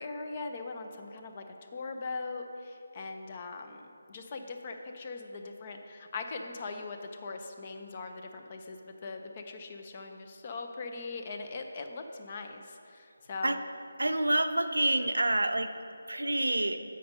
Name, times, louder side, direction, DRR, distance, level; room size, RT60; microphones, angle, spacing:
voice 1, 0.0-1.4 1.7-12.6 12.9-13.6, left 3 dB, 35° left, 5 dB, 0.6 m, -40 dB
voice 2, 14.0-15.7 16.1-16.8, right 1 dB, 90° right, 8 dB, 0.5 m, -27 dB
7.7 x 5.2 x 5.2 m, 2.6 s
figure-of-eight pair, 160°, 0 cm